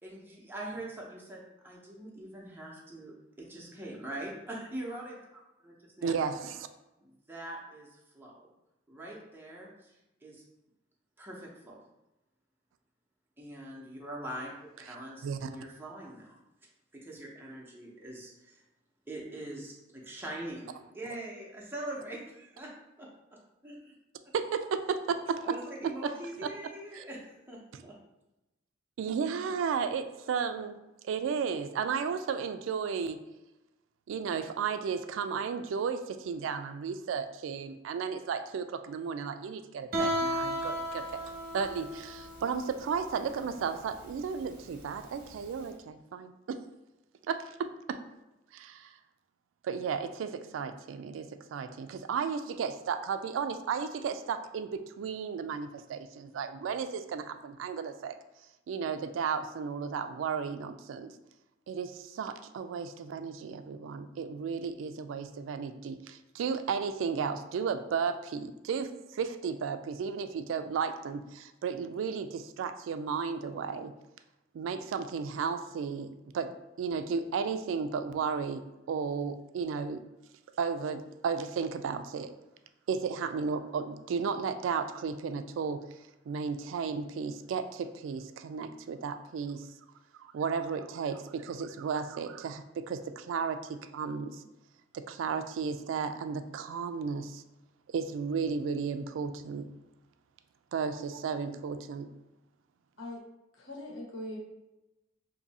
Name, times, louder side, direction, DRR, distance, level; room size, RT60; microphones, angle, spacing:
voice 1, 0.0-6.1 6.4-6.5 7.0-8.4 8.9-9.9 10.2-10.4 11.2-11.8 13.4-14.5 14.9-16.4 16.9-18.6 19.1-22.7 23.0-23.1 23.6-24.0 25.4-28.0, right 1 dB, 10° right, -3 dB, 0.7 m, -43 dB
voice 2, 6.0-6.7 15.2-15.5 24.3-25.6 26.0-26.1 26.9-27.0 27.7-27.8 29.0-30.8 31.0-33.2 34.1-41.0 41.5-46.6 47.3-48.0 48.5-48.9 49.6-58.2 58.7-61.1 61.7-73.9 74.5-80.0 80.6-82.3 82.9-85.8 86.3-89.7 90.2-94.4 94.9-97.4 97.9-99.7 100.7-102.1, right 6 dB, 90° right, 10 dB, 0.3 m, -34 dB
Guitar, 39.9-45.6, equal, 50° right, 0.9 m, -35 dB
voice 3, 103.6-104.4, left 1 dB, 85° left, -2 dB, 0.9 m, -41 dB
2.6 x 2.6 x 4.0 m, 0.98 s
head